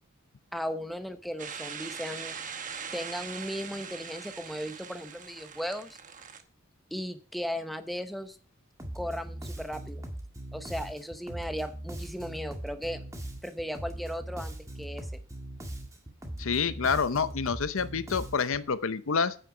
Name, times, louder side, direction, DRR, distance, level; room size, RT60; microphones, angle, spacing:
voice 1, 0.5-2.4 2.9-6.0 6.9-8.4 8.9-10.1 10.5-13.0 13.4-15.1, equal, ahead, 8 dB, 0.9 m, -36 dB
sound 1, 1.4-6.4, right 6 dB, 40° right, 1.1 m, -41 dB
Bass guitar, 8.8-18.7, right 1 dB, 15° right, 1.7 m, -40 dB
voice 2, 16.4-19.3, left 5 dB, 70° left, 14 dB, 0.7 m, -28 dB
9.1 x 8.9 x 4.9 m, 0.38 s
head